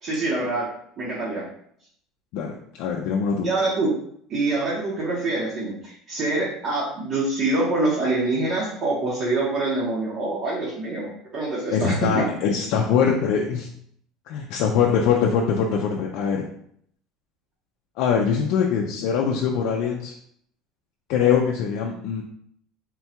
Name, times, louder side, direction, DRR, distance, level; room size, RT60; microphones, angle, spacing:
voice 1, 0.0-0.7 1.0-1.5 3.4-3.9 4.3-12.2, right 2 dB, 35° right, -6 dB, 0.9 m, -25 dB
voice 2, 2.8-3.5 11.7-13.7 14.3-16.4 18.0-20.1 21.1-22.2, left 7 dB, 60° left, 0 dB, 0.4 m, -22 dB
3.7 x 2.3 x 4.3 m, 0.67 s
cardioid pair, 170°, 0 cm